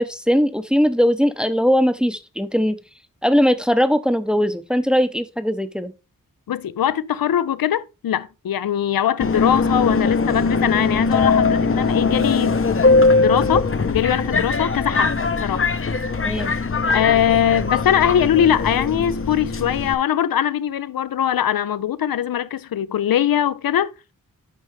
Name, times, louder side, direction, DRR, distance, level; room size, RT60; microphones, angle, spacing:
voice 1, 0.0-2.8 3.2-5.9 16.2-16.5, equal, 5° right, 0.6 m, -19 dB
voice 2, 6.5-12.6 13.2-15.1 15.4-15.6 16.9-23.9, left 10 dB, 85° left, 0.5 m, -21 dB
Subway metro underground, 9.2-19.9, left 3 dB, 40° left, 0.7 m, -20 dB
8.2 x 5.4 x 3.2 m
wide cardioid pair, 95°, 34 cm